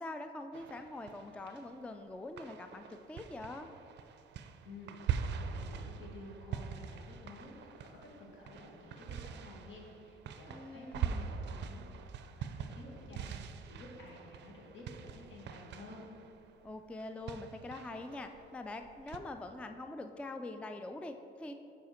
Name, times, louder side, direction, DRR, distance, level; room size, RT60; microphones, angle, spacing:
voice 1, 0.0-3.7 10.5-11.3 16.6-21.5, left 2 dB, 5° left, 7 dB, 0.3 m, -44 dB
sound 1, 0.5-2.0 2.4-19.2, right 7 dB, 60° right, 0.4 m, -43 dB
voice 2, 4.6-11.8 12.2-16.0, left 2 dB, 75° left, -2 dB, 1.7 m, -52 dB
7.3 x 4.9 x 4.3 m, 2.7 s
cardioid pair, 90°, 20 cm